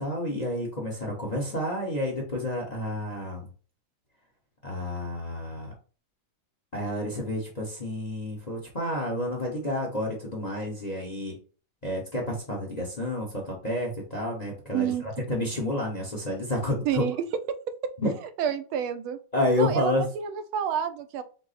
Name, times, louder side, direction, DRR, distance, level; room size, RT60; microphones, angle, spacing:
voice 1, 0.0-3.4 4.6-5.7 6.7-11.3 11.8-14.9 15.3-17.0 18.0-18.1 19.3-20.0, left 1 dB, 35° left, -1 dB, 0.6 m, -30 dB
voice 2, 14.7-15.0 16.8-17.2 18.4-19.2 19.6-21.2, right 8 dB, 80° right, 10 dB, 1.4 m, -28 dB
5.9 x 2.0 x 4.0 m, 0.38 s
omnidirectional pair, 2.3 m